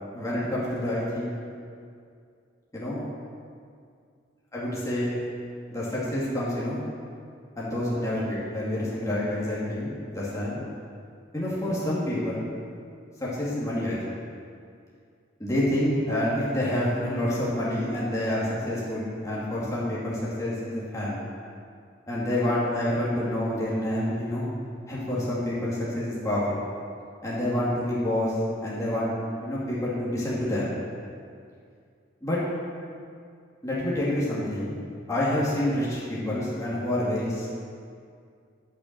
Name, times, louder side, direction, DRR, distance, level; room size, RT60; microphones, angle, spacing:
voice 1, 0.1-1.3 2.7-3.0 4.5-5.2 5.7-6.8 7.6-10.6 11.3-12.5 13.2-14.0 15.4-21.2 22.1-24.5 24.9-26.6 27.2-28.3 28.6-29.1 29.4-30.7 32.2-32.4 33.6-34.8 35.1-37.5, left 1 dB, 15° left, -8 dB, 2.3 m, -28 dB
9.1 x 8.4 x 7.4 m, 2.3 s
head